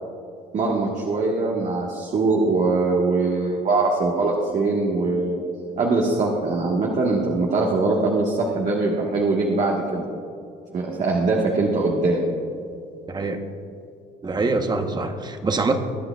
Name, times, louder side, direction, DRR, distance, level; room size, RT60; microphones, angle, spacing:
voice 1, 0.5-5.4 5.8-10.0 10.7-12.3, right 3 dB, 45° right, -2 dB, 1.5 m, -22 dB
voice 2, 13.1-13.4 14.2-15.8, right 3 dB, 25° right, 6 dB, 1.0 m, -24 dB
22.0 x 9.8 x 2.4 m, 2.4 s
cardioid pair, 110°, 17 cm